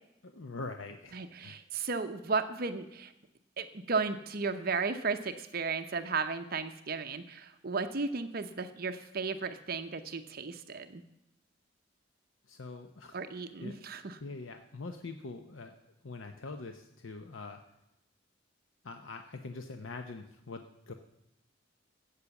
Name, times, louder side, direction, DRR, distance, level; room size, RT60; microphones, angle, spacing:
voice 1, 0.2-1.6 12.5-13.2 13.6-13.8 14.2-15.7 16.0-17.6 18.8-20.9, left 3 dB, 85° left, 6 dB, 0.8 m, -43 dB
voice 2, 1.1-3.1 3.6-11.0 13.1-14.2, right 4 dB, 50° right, 8 dB, 0.8 m, -34 dB
13.5 x 8.4 x 7.1 m, 0.86 s
head